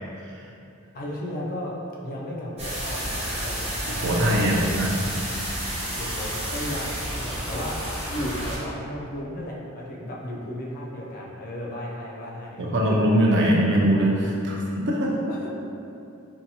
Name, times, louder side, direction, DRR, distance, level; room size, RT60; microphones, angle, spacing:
voice 1, 0.9-1.7 2.0-3.6 4.1-4.6 6.0-7.7 8.1-12.6 15.3-15.5, left 1 dB, 45° left, -4 dB, 0.4 m, -34 dB
sound 1, 2.6-8.6, equal, 30° right, 0.9 m, -30 dB
voice 2, 4.0-4.9 12.6-15.1, right 1 dB, 55° right, -3 dB, 0.4 m, -21 dB
2.7 x 2.3 x 2.7 m, 2.7 s
head